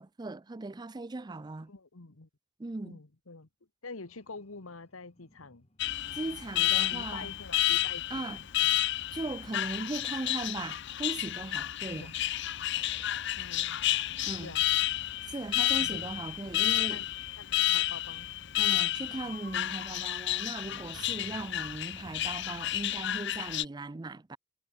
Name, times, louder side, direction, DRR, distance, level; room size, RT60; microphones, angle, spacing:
voice 1, 0.0-1.7 2.6-3.0 6.1-7.3 8.1-8.4 9.1-12.1 14.2-14.5 15.3-17.0 18.6-24.4, right 2 dB, 20° right, 0.4 m, -38 dB
voice 2, 1.7-2.3 2.8-3.5 3.8-5.7 6.9-8.8 11.8-12.2 13.4-13.8 14.4-14.6 15.7-16.1 16.9-17.1 17.3-18.3, left 3 dB, 85° left, 1.5 m, -47 dB
sound 1, 4.1-22.8, left 2 dB, 30° left, 5.1 m, -57 dB
Alarm, 5.8-23.6, left 13 dB, 55° left, 0.7 m, -31 dB
head